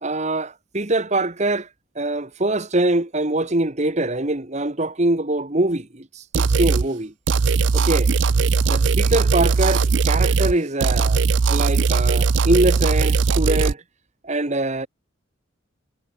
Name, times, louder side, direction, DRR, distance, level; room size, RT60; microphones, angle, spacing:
voice 1, 0.0-1.7 1.9-7.1 7.7-8.1 8.7-13.8 14.2-14.9, right 2 dB, 35° right, 1.7 m, -23 dB
sound 1, 6.3-6.9 7.3-10.6 10.8-13.7, right 4 dB, 65° right, 0.5 m, -19 dB
head